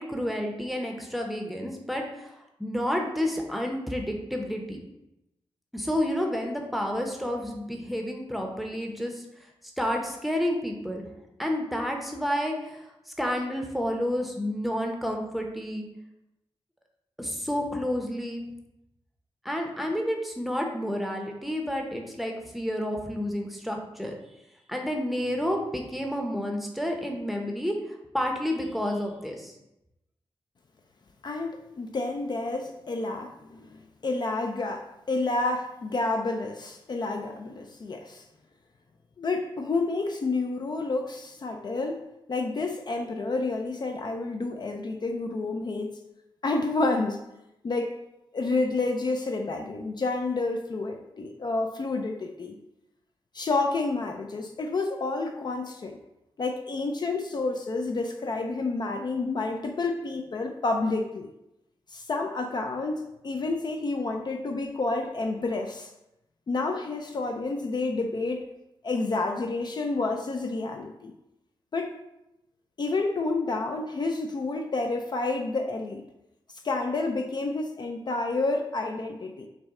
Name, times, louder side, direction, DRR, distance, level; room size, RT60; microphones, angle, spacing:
voice 1, 0.0-4.8 5.7-9.2 9.8-11.0 11.4-12.8 13.2-15.8 17.2-18.4 19.4-24.1 24.7-27.8 28.1-29.5, equal, ahead, 1 dB, 0.7 m, -30 dB
voice 2, 31.2-38.2 39.2-42.0 42.3-46.0 46.4-47.2 47.6-48.0 48.3-52.6 53.3-56.0 56.4-61.3 61.9-65.9 66.5-68.4 68.8-71.1 71.7-72.0 72.8-76.0 76.6-79.5, left 3 dB, 45° left, 3 dB, 0.4 m, -29 dB
6.0 x 2.1 x 3.6 m, 0.88 s
wide cardioid pair, 95°, 10 cm